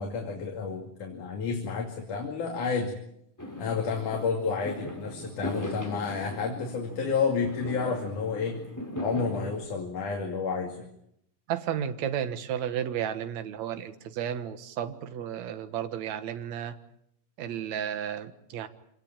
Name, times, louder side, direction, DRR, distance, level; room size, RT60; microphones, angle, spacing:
voice 1, 0.0-3.0 3.6-8.6 9.0-10.9, left 5 dB, 65° left, 1 dB, 4.0 m, -30 dB
Fireworks, 3.4-9.6, left 1 dB, 5° left, 4.1 m, -39 dB
voice 2, 11.5-16.8 17.4-18.7, right 9 dB, 60° right, 9 dB, 2.6 m, -33 dB
26.5 x 19.0 x 9.0 m, 0.75 s
omnidirectional pair, 3.9 m